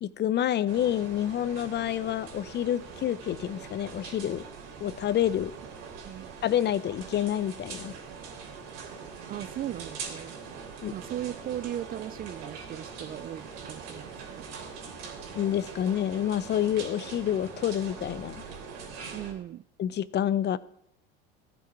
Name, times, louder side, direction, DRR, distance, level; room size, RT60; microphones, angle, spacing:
voice 1, 0.0-4.4 4.8-5.5 6.4-7.9 10.8-10.9 15.3-18.4 19.8-20.6, left 10 dB, 35° left, 18 dB, 0.6 m, -28 dB
sound 1, 0.7-19.3, right 5 dB, 60° right, 3.1 m, -42 dB
voice 2, 9.3-10.3 10.9-14.5 19.1-19.6, right 12 dB, 30° right, 17 dB, 0.4 m, -37 dB
15.0 x 9.4 x 4.7 m, 0.73 s
hypercardioid pair, 90°, 30 cm